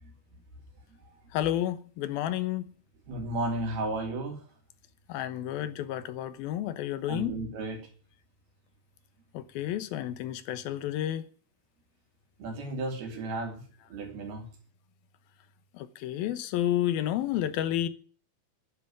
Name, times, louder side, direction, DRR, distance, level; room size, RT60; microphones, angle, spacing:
voice 1, 1.3-2.7 5.1-7.3 9.3-11.2 15.7-17.9, left 12 dB, 80° left, 13 dB, 2.8 m, -31 dB
voice 2, 3.1-4.4 7.1-7.9 12.4-13.6 13.9-14.5, right 2 dB, 85° right, 3 dB, 5.2 m, -33 dB
11.0 x 10.5 x 9.1 m, 0.42 s
omnidirectional pair, 4.3 m